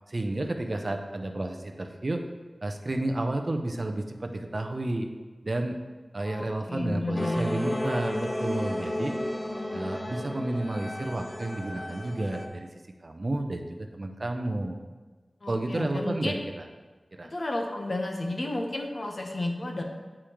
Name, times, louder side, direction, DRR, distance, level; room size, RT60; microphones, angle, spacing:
voice 1, 0.1-2.2 2.6-5.1 5.4-5.8 6.1-9.1 9.7-12.7 13.0-14.8 15.5-16.6 17.1-17.3, right 2 dB, 50° right, 4 dB, 0.6 m, -31 dB
voice 2, 6.2-7.5 15.4-16.4 17.2-19.8, left 1 dB, 60° left, 1 dB, 0.9 m, -32 dB
sound 1, 7.1-12.5, left 1 dB, 25° left, 0.7 m, -33 dB
8.6 x 4.9 x 3.0 m, 1.3 s
wide cardioid pair, 60°, 0 cm